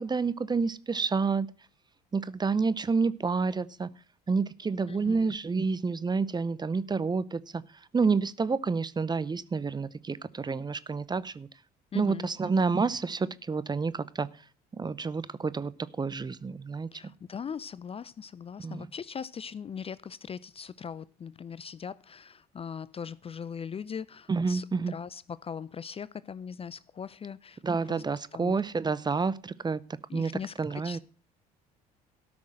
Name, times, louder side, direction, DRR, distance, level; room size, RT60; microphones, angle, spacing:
voice 1, 0.0-1.5 2.1-3.9 4.3-11.5 11.9-14.3 14.7-15.7 16.0-17.0 18.6-18.9 24.3-24.9 27.6-29.8 30.1-30.3 30.6-31.0, right 4 dB, 20° right, 0.6 m, -29 dB
voice 2, 4.9-5.3 11.9-12.3 16.9-28.0 28.3-28.5 30.1-30.5 30.8-31.0, left 7 dB, 30° left, 0.5 m, -40 dB
13.0 x 6.1 x 7.5 m
hypercardioid pair, 65°, 20 cm